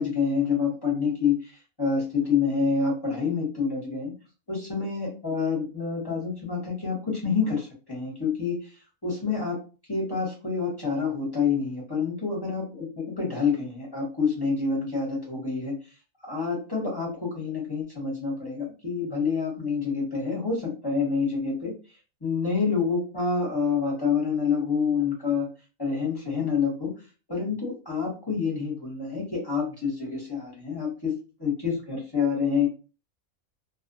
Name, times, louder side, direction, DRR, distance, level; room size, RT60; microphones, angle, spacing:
voice 1, 0.0-1.5 1.8-4.1 4.5-8.6 9.0-9.6 9.9-15.8 16.2-21.7 22.2-25.5 25.8-26.9 27.3-31.1 31.4-32.7, left 5 dB, 20° left, -4 dB, 0.7 m, -27 dB
2.5 x 2.1 x 2.6 m, 0.33 s
omnidirectional pair, 1.5 m